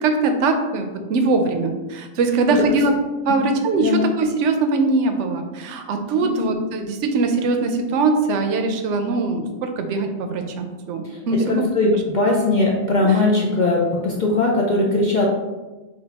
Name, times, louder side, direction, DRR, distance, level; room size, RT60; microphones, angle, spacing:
voice 1, 0.0-2.9 3.3-11.7, right 3 dB, 65° right, 6 dB, 0.9 m, -21 dB
voice 2, 11.0-15.2, left 2 dB, 60° left, -2 dB, 0.5 m, -20 dB
6.0 x 2.3 x 3.4 m, 1.2 s
omnidirectional pair, 1.4 m